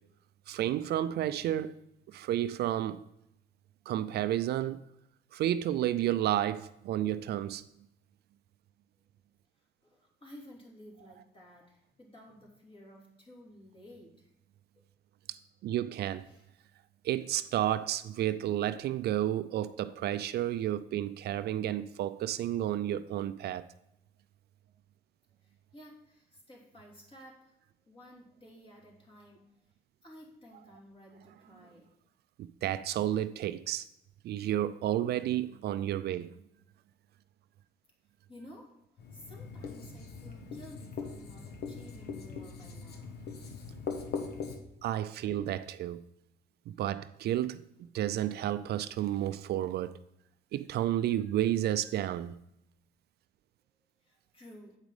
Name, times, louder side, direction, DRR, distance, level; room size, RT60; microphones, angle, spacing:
voice 1, 0.5-1.7 2.1-3.0 3.9-4.8 5.3-7.6 15.6-16.2 17.0-23.7 32.4-33.9 34.2-36.3 44.8-46.0 46.7-47.6 47.9-50.0 50.5-52.4, right 12 dB, 70° right, 0.4 m, -31 dB
voice 2, 9.6-14.3 14.7-14.8 16.2-16.5 25.4-29.4 30.0-31.9 38.3-38.8 39.1-43.2 54.0-54.8, equal, 30° left, 2.8 m, -54 dB
Writing, 39.0-44.6, left 5 dB, 70° left, 1.2 m, -41 dB
8.2 x 5.2 x 4.8 m
cardioid pair, 100°, 18 cm